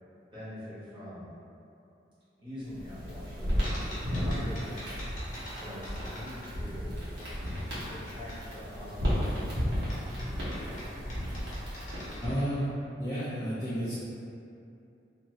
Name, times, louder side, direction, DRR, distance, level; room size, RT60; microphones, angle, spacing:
voice 1, 0.3-1.3 2.4-4.8 5.5-7.0 7.8-10.8, equal, 25° right, -13 dB, 0.9 m, -44 dB
sound 1, 2.7-12.5, equal, 85° right, 1.0 m, -34 dB
sound 2, 3.6-6.9 7.2-8.4 9.9-12.6, equal, 45° left, 0.7 m, -45 dB
voice 2, 12.2-12.7 13.0-13.9, equal, 15° left, -12 dB, 0.4 m, -31 dB
2.6 x 2.4 x 3.0 m, 2.6 s
head